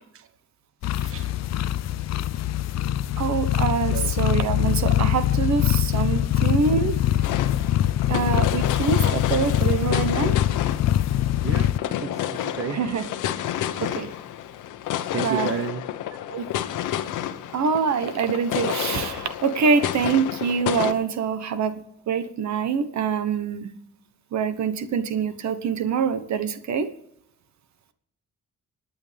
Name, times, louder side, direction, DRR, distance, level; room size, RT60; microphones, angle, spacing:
sound 1, 0.8-11.8, left 12 dB, 60° left, 0.5 m, -23 dB
voice 1, 0.8-1.3 3.9-4.1 6.2-6.3 7.2-7.3 9.0-9.1 11.4-12.8 15.1-15.8 16.1-16.2, right 7 dB, 45° right, 10 dB, 1.0 m, -32 dB
voice 2, 3.2-7.0 8.1-10.4 12.7-13.1 13.8-14.1 15.2-15.5 16.3-16.5 17.5-23.7 24.3-26.9, right 6 dB, 65° right, 11 dB, 1.2 m, -25 dB
sound 2, 7.2-20.9, left 11 dB, 85° left, 1.0 m, -30 dB
26.0 x 9.1 x 3.5 m, 0.74 s
cardioid pair, 90°, 30 cm